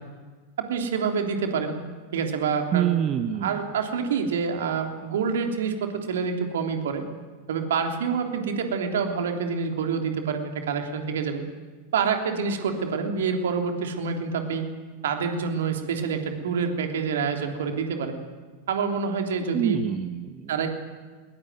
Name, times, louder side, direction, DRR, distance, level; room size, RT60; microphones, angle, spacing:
voice 1, 0.6-1.8 2.1-2.9 3.4-7.0 7.5-11.4 11.9-14.7 15.0-18.2 18.7-19.8 20.5-20.7, right 6 dB, 60° right, 4 dB, 3.3 m, -27 dB
voice 2, 2.7-3.7 19.5-20.6, right 9 dB, 30° right, 9 dB, 1.2 m, -26 dB
21.0 x 20.5 x 9.5 m, 1.4 s
figure-of-eight pair, 90°, 0 cm